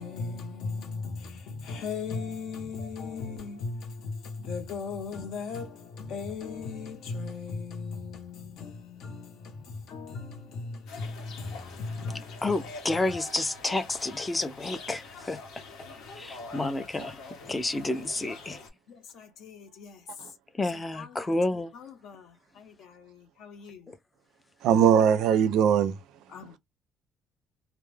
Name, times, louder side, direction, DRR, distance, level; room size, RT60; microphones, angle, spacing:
voice 1, 0.0-12.6 18.9-20.0 20.7-23.9 26.3-26.6, left 4 dB, 60° left, 0.7 m, -38 dB
sound 1, 10.9-18.7, left 3 dB, 90° left, 0.9 m, -44 dB
voice 2, 12.4-15.4 16.2-18.6 20.6-21.7, left 2 dB, 10° left, 0.3 m, -30 dB
voice 3, 24.6-26.6, right 8 dB, 75° right, 0.4 m, -23 dB
2.2 x 2.0 x 3.1 m
cardioid pair, 180°, 0 cm